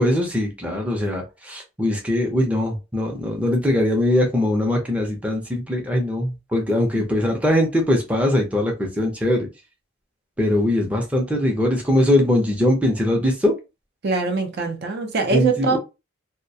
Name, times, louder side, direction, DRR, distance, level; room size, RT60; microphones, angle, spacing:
voice 1, 0.0-9.5 10.4-13.5 15.3-15.8, left 1 dB, 5° right, 0.5 m, -21 dB
voice 2, 14.0-15.8, right 3 dB, 55° right, 0.5 m, -22 dB
2.3 x 2.1 x 2.6 m
head